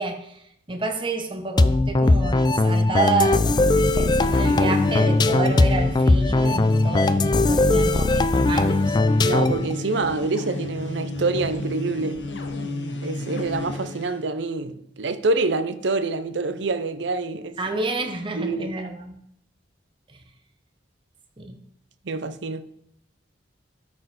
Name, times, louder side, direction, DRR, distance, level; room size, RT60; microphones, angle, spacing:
voice 1, 0.0-9.0 17.6-19.2 20.1-20.2 21.4-21.6, right 3 dB, 25° right, 1.0 m, -29 dB
sound 1, 1.6-9.7, left 2 dB, 25° left, 0.3 m, -19 dB
sound 2, 3.2-14.2, left 1 dB, 75° left, 0.9 m, -32 dB
voice 2, 9.2-12.2 13.0-17.6 18.4-18.7 22.0-22.7, right 3 dB, 70° right, 0.6 m, -26 dB
13.0 x 4.4 x 4.1 m
head